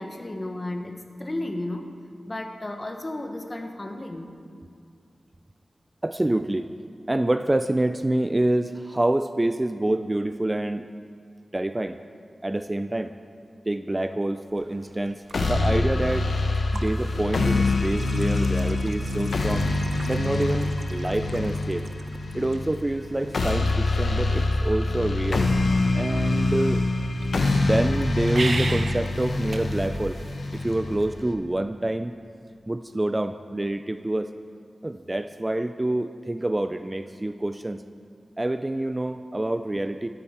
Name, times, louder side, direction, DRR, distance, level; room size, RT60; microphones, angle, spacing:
voice 1, 0.0-1.9 2.2-4.3, left 1 dB, 30° left, 5 dB, 1.0 m, -33 dB
voice 2, 6.0-6.7 7.1-10.9 11.5-12.0 12.4-13.1 13.7-16.3 16.7-19.7 20.1-21.9 22.3-25.5 25.9-26.9 27.5-30.2 30.6-32.1 32.7-34.3 34.8-37.8 38.4-40.1, right 1 dB, 20° right, 10 dB, 0.3 m, -27 dB
sound 1, 14.5-31.2, right 3 dB, 65° right, 0.8 m, -40 dB
sound 2, 15.3-31.3, left 2 dB, 80° left, 1.0 m, -25 dB
13.5 x 12.5 x 4.3 m, 2.3 s
wide cardioid pair, 95°, 0 cm